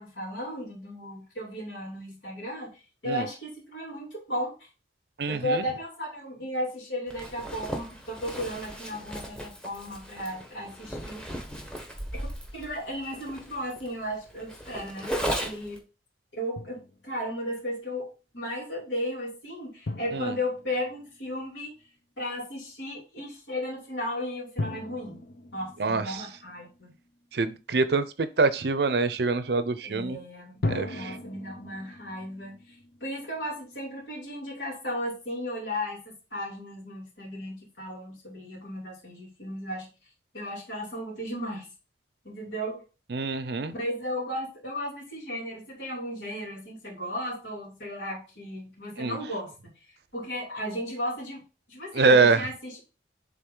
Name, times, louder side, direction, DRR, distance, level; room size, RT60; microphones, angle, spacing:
voice 1, 0.0-4.7 5.3-11.2 12.5-15.8 16.3-21.7 22.2-25.2 25.5-26.9 29.8-30.6 30.9-39.9 40.3-41.7 42.2-42.8 43.7-49.7 50.1-51.4 51.7-52.8, equal, 80° left, -2 dB, 2.9 m, -35 dB
voice 2, 5.2-5.6 20.1-20.3 25.8-26.2 27.3-30.2 30.7-31.2 43.1-43.7 49.0-49.2 51.9-52.5, right 4 dB, 60° right, 13 dB, 0.6 m, -25 dB
Zipper (clothing), 7.1-15.8, equal, 5° left, 0.9 m, -36 dB
Drum, 16.6-17.3 19.9-21.6 24.6-27.1 30.6-33.8, left 2 dB, 55° left, 0.7 m, -38 dB
7.7 x 3.6 x 3.8 m, 0.32 s
head